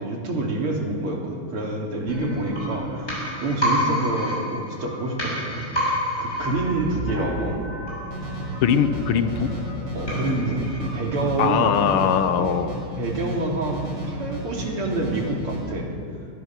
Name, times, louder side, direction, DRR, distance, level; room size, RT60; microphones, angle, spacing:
voice 1, 0.0-3.1 3.4-7.6 9.9-10.6 10.9-11.8 12.4-12.6 13.0-15.9, right 2 dB, 75° right, -1 dB, 3.9 m, -27 dB
sound 1, 2.1-11.8 12.1-12.2, equal, 30° left, 7.5 m, -30 dB
sound 2, 8.1-15.6, right 1 dB, 45° right, 7.1 m, -33 dB
voice 2, 8.6-9.5 11.4-12.7, left 8 dB, 75° left, 10 dB, 1.9 m, -21 dB
23.5 x 19.0 x 6.1 m, 2.3 s
omnidirectional pair, 2.4 m